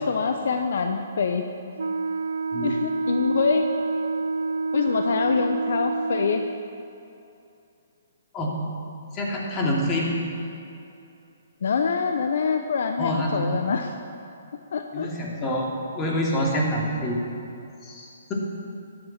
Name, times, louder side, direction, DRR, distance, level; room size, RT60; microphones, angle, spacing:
voice 1, 0.0-1.4 2.6-3.6 4.7-6.4 11.6-13.9 14.7-15.1, left 5 dB, 65° left, 5 dB, 0.8 m, -25 dB
Wind instrument woodwind instrument, 1.8-6.6, right 3 dB, 80° right, 0.5 m, -27 dB
voice 2, 9.1-10.2 13.0-13.5 14.9-17.2 17.8-18.3, equal, 25° left, -2 dB, 2.9 m, -26 dB
14.0 x 11.0 x 5.9 m, 2.7 s
hypercardioid pair, 135°, 0 cm